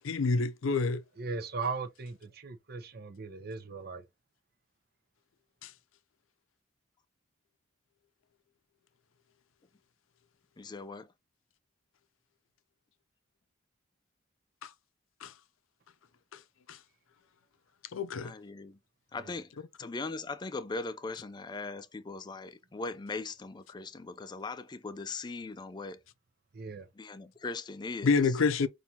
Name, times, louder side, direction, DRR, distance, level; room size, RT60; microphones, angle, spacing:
voice 1, 0.0-1.0 5.6-5.7 14.6-14.7 15.2-15.3 16.7-16.8 17.9-18.3 28.0-28.7, left 4 dB, 85° left, 0.5 m, -27 dB
voice 2, 1.2-4.0 19.2-19.4 26.5-26.9, right 4 dB, 50° right, 0.7 m, -38 dB
voice 3, 10.6-11.1 18.2-18.8 19.1-19.5 19.8-26.0 27.0-28.1, left 3 dB, 20° left, 0.3 m, -39 dB
5.8 x 2.6 x 2.7 m
head